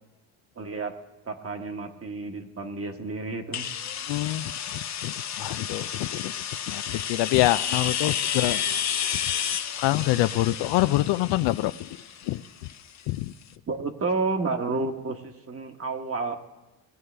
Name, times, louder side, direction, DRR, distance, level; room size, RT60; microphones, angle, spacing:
voice 1, 0.6-0.9 1.3-3.7 13.7-16.4, right 3 dB, 30° right, 5 dB, 1.4 m, -30 dB
sound 1, 3.5-13.2, left 8 dB, 40° left, 0.8 m, -31 dB
voice 2, 4.1-8.6 9.7-11.9 12.3-12.4 13.1-13.3, left 17 dB, 70° left, 14 dB, 0.5 m, -26 dB
19.5 x 9.2 x 3.4 m, 1.1 s
supercardioid pair, 75°, 44 cm